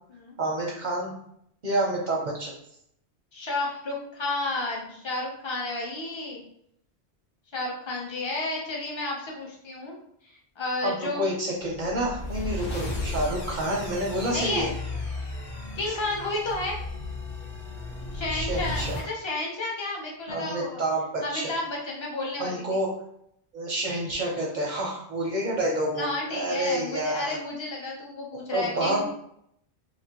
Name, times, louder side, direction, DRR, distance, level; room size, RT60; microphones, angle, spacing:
voice 1, 0.4-1.1 1.6-2.5 10.8-14.7 15.9-16.0 18.3-19.0 20.3-21.5 22.4-22.9 23.5-27.4 28.5-29.0, right 1 dB, 55° right, -2 dB, 0.6 m, -28 dB
voice 2, 3.3-6.4 7.5-9.9 10.3-11.2 12.3-12.6 14.3-14.7 15.8-16.8 18.1-20.8 21.2-22.8 26.0-29.0, left 2 dB, 30° left, -2 dB, 0.6 m, -32 dB
sound 1, 11.7-19.1, left 2 dB, 60° left, 0.9 m, -34 dB
2.7 x 2.4 x 2.8 m, 0.72 s
omnidirectional pair, 1.1 m